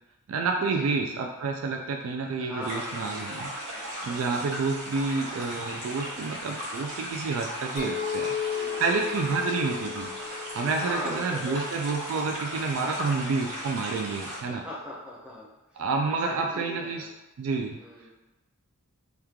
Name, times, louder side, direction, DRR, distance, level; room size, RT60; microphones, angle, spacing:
voice 1, 0.3-14.6 15.7-17.1 17.4-17.8, right 4 dB, 65° right, 1 dB, 0.3 m, -29 dB
voice 2, 2.4-4.4 8.5-9.1 10.8-11.6 12.9-13.1 14.4-15.5 16.1-17.1 17.8-18.1, left 1 dB, 5° right, -5 dB, 0.6 m, -40 dB
sound 1, 2.6-14.4, equal, 90° right, 1.2 m, -37 dB
Chink clink, 7.8-12.3, left 8 dB, 40° left, 0.3 m, -35 dB
3.0 x 2.3 x 3.5 m, 1.0 s
head